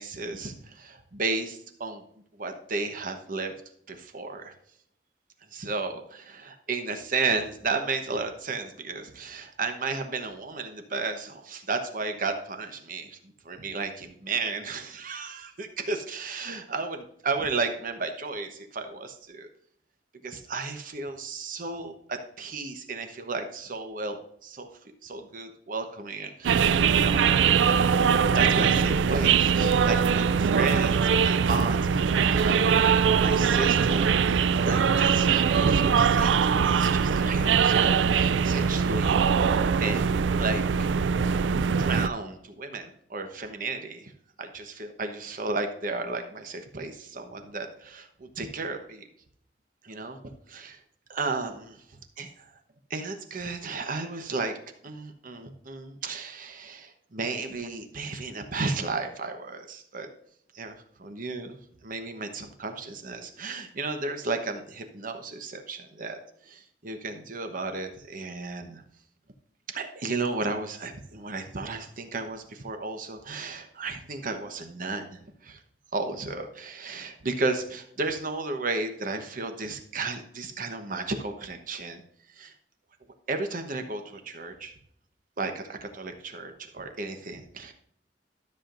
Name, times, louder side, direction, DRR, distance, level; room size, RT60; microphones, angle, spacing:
voice 1, 0.0-2.0 2.4-3.5 3.9-4.5 5.5-19.5 20.2-24.7 25.0-34.1 34.6-39.5 39.8-40.1 40.4-40.7 41.2-44.1 44.4-49.1 49.8-50.2 50.5-50.8 51.1-51.8 52.2-52.5 52.9-54.6 54.8-60.1 60.5-68.8 69.7-75.6 75.9-82.0 82.3-82.5 83.3-84.7 85.4-87.7, right 3 dB, 50° right, 6 dB, 1.0 m, -33 dB
sound 1, 26.4-42.1, right 6 dB, 85° right, 0.4 m, -22 dB
13.0 x 7.2 x 2.5 m, 0.68 s
head